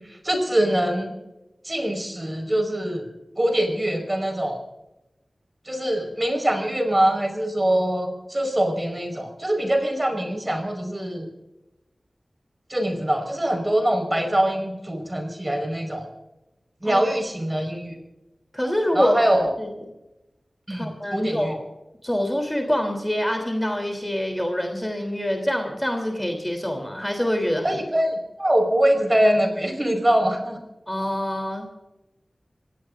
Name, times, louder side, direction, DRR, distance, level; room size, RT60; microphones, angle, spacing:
voice 1, 0.1-1.2 1.6-3.0 3.4-4.6 5.7-11.3 12.7-16.1 16.8-17.9 18.9-19.5 20.7-21.5 27.6-30.6, right 1 dB, 25° right, 5 dB, 5.0 m, -23 dB
voice 2, 18.5-19.2 19.6-19.7 20.7-21.6 22.0-27.8 30.9-31.8, equal, 10° left, 4 dB, 3.5 m, -25 dB
26.5 x 17.5 x 2.6 m, 0.95 s
wide cardioid pair, 60°, 0 cm